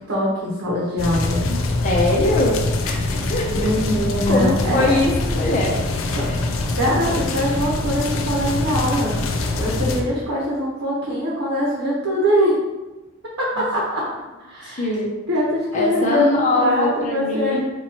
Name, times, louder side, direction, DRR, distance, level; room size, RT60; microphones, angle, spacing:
voice 1, 0.1-1.4 3.5-4.9 6.1-6.3 6.7-9.2 9.6-12.6 13.4-14.0 14.4-14.9 15.3-17.6, equal, 70° right, -5 dB, 1.1 m, -22 dB
sound 1, 1.0-10.0, left 2 dB, 85° left, 0.5 m, -24 dB
voice 2, 1.8-3.7 4.3-5.7 6.1-6.4 14.8-15.1 15.7-17.6, left 2 dB, 40° left, -2 dB, 0.6 m, -22 dB
5.2 x 3.0 x 2.9 m, 1.1 s
head